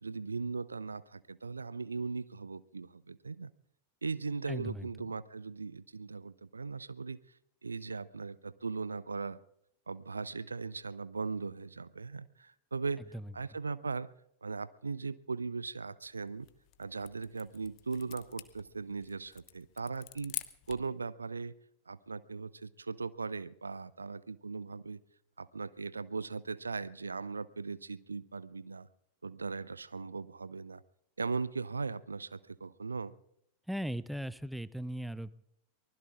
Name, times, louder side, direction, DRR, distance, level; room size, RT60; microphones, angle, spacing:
voice 1, 0.0-3.5 4.0-7.2 7.6-9.4 9.9-13.0 13.3-14.1 14.4-16.5 16.8-20.3 20.7-21.5 21.9-25.0 25.4-28.9 29.2-30.8 31.2-33.1, right 4 dB, 75° right, 20 dB, 0.5 m, -38 dB
voice 2, 4.5-4.9 13.1-13.2 33.7-35.3, equal, ahead, 19 dB, 0.5 m, -38 dB
sound 1, 16.3-20.9, left 18 dB, 40° left, 1.0 m, -47 dB
24.0 x 20.0 x 2.4 m, 0.77 s
figure-of-eight pair, 90°, 0 cm